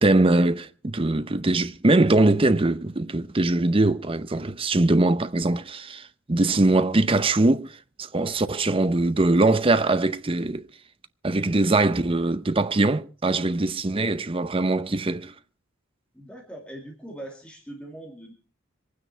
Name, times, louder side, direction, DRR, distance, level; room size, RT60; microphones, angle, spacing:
voice 1, 0.0-10.7 11.2-15.3, right 2 dB, 25° right, 0.7 m, -22 dB
voice 2, 16.1-18.3, right 1 dB, 5° left, 2.4 m, -41 dB
25.5 x 9.5 x 4.4 m
head